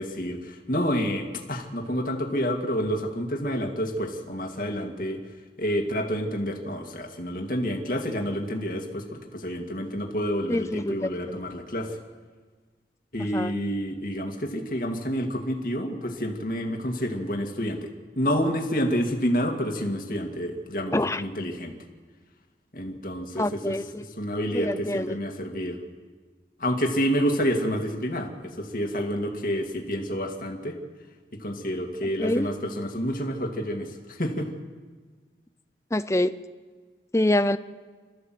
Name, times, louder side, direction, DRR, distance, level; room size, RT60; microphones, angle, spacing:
voice 1, 0.0-5.2 5.6-12.0 13.1-17.9 18.2-21.7 22.7-25.8 26.6-30.8 31.3-34.5, equal, 50° left, 3 dB, 2.4 m, -29 dB
voice 2, 10.5-11.4 13.3-13.5 20.9-21.2 23.4-24.0 24.5-25.2 32.2-32.5 35.9-36.4 37.1-37.6, left 1 dB, 15° left, 14 dB, 0.6 m, -25 dB
27.5 x 14.0 x 7.8 m, 1.5 s
head